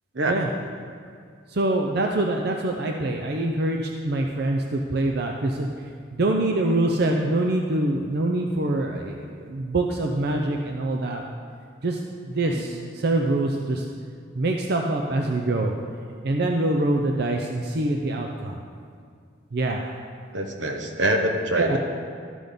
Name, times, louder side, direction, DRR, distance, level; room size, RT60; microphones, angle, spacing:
voice 1, 1.5-11.2 11.8-12.0 12.3-13.9 14.3-15.8 16.2-18.6 19.5-19.9 21.6-21.8, right 2 dB, 60° right, 2 dB, 0.6 m, -25 dB
voice 2, 20.3-21.8, right 1 dB, 85° right, 3 dB, 1.1 m, -24 dB
13.0 x 6.2 x 5.2 m, 2.1 s
head